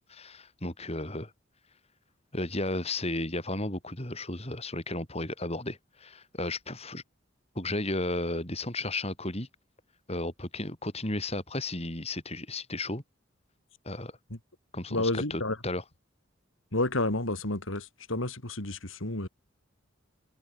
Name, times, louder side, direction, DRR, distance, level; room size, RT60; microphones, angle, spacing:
voice 1, 0.1-1.3 2.3-7.0 7.6-9.5 10.1-13.0 13.9-14.1 14.7-15.8, left 2 dB, 30° left, 7.3 m, -34 dB
voice 2, 14.9-15.6 16.7-19.3, left 2 dB, 85° left, 3.8 m, -30 dB
head